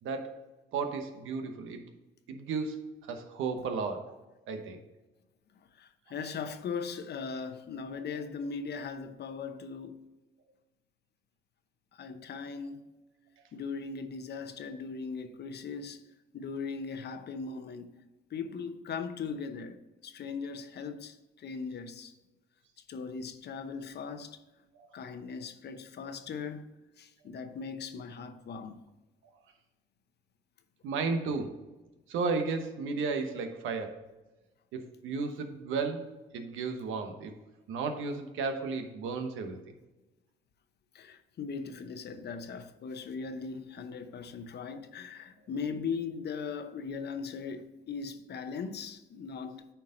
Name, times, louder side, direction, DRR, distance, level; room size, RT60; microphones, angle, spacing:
voice 1, 0.0-1.8 2.3-4.1 4.5-4.8 24.7-24.9 30.8-31.6 32.1-34.0 34.7-36.0 36.3-37.3 37.7-39.7, right 4 dB, 85° right, 1.1 m, -34 dB
voice 2, 5.7-10.0 11.9-12.9 13.5-16.0 16.3-17.9 18.3-22.1 22.9-24.4 24.9-28.8 40.9-49.7, left 5 dB, 60° left, 0.8 m, -39 dB
9.0 x 4.7 x 3.8 m
cardioid pair, 90°, 20 cm